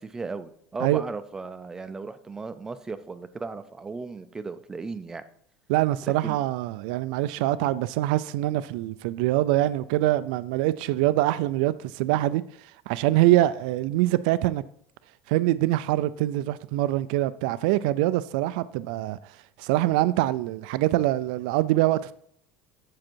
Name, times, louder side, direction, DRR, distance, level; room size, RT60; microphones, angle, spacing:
voice 1, 0.0-5.2 6.1-6.4, right 4 dB, 15° right, 0.4 m, -36 dB
voice 2, 5.7-12.4 12.9-14.6 15.3-19.2 19.6-22.1, right 15 dB, 80° right, 0.3 m, -24 dB
7.6 x 7.3 x 4.5 m
cardioid pair, 165°, 4 cm